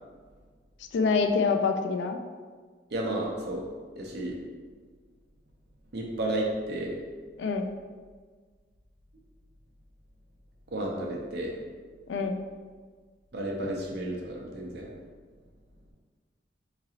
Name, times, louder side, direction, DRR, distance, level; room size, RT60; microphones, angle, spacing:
voice 1, 0.9-2.2 7.4-7.7 12.1-12.3, left 4 dB, 85° left, 7 dB, 0.4 m, -25 dB
voice 2, 2.9-3.6 4.0-4.4 5.9-6.9 10.7-11.5 13.3-14.9, right 1 dB, 65° right, -1 dB, 0.7 m, -32 dB
3.7 x 3.0 x 2.8 m, 1.5 s
head